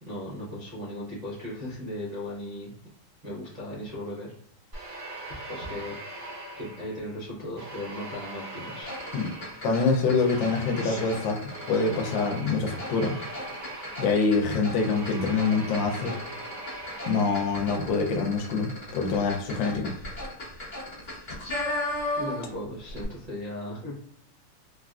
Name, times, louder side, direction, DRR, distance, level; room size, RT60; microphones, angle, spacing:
voice 1, 0.0-2.7 3.2-4.3 5.5-5.9 6.6-9.0 22.2-24.0, left 1 dB, 85° right, -6 dB, 0.3 m, -37 dB
sound 1, 4.7-7.1 7.6-17.9, right 2 dB, 35° right, 0.7 m, -41 dB
sound 2, 8.8-22.6 22.9-23.0, left 1 dB, 40° left, 0.6 m, -36 dB
voice 2, 9.6-11.4 11.7-13.2 14.0-16.1 17.1-19.9, left 4 dB, 80° left, 2 dB, 1.3 m, -25 dB
3.4 x 2.4 x 2.3 m, 0.63 s
omnidirectional pair, 2.1 m